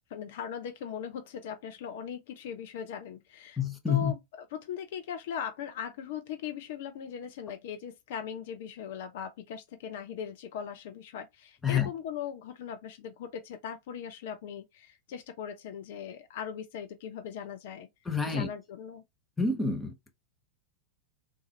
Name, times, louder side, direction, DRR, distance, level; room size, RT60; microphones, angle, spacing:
voice 1, 0.0-3.6 3.9-4.2 4.5-17.9 18.3-19.0, left 8 dB, 55° left, 0.5 m, -39 dB
voice 2, 3.6-4.1 11.6-11.9 18.0-18.5 19.4-20.1, left 6 dB, 10° left, 0.8 m, -28 dB
3.6 x 2.6 x 3.2 m
figure-of-eight pair, 90°, 0 cm